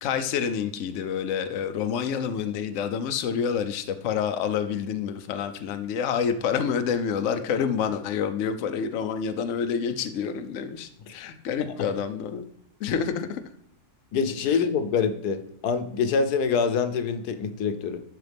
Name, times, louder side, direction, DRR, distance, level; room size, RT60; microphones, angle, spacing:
voice 1, 0.0-12.5 12.8-13.4 14.5-14.6, left 7 dB, 65° left, 8 dB, 0.9 m, -28 dB
voice 2, 14.1-18.0, left 5 dB, 85° left, 9 dB, 1.3 m, -25 dB
11.5 x 4.0 x 3.4 m, 0.71 s
omnidirectional pair, 1.6 m